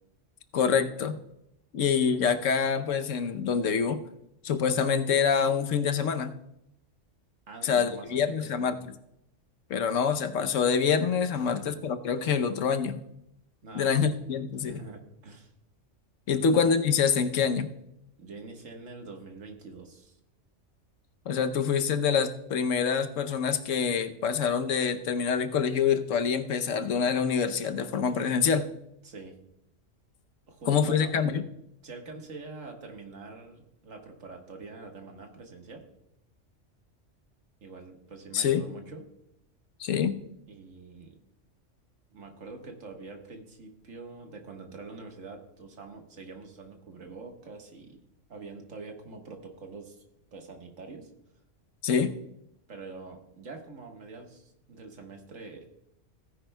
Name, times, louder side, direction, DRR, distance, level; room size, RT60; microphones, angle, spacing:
voice 1, 0.5-1.2 1.7-4.0 4.4-6.4 7.6-8.8 9.7-13.0 13.7-14.8 16.3-17.7 21.3-28.7 30.7-31.4 38.3-38.6 39.8-40.2 51.8-52.1, left 6 dB, 85° left, 8 dB, 1.1 m, -26 dB
voice 2, 7.5-8.7 11.4-11.8 13.6-14.1 14.6-15.5 16.3-16.5 18.2-20.2 29.0-29.4 30.5-31.1 31.8-35.9 37.6-39.1 40.5-41.2 42.1-48.0 48.3-50.0 50.3-51.1 52.7-55.7, right 3 dB, 85° right, 3 dB, 1.8 m, -45 dB
16.5 x 10.0 x 2.2 m, 0.81 s
omnidirectional pair, 1.3 m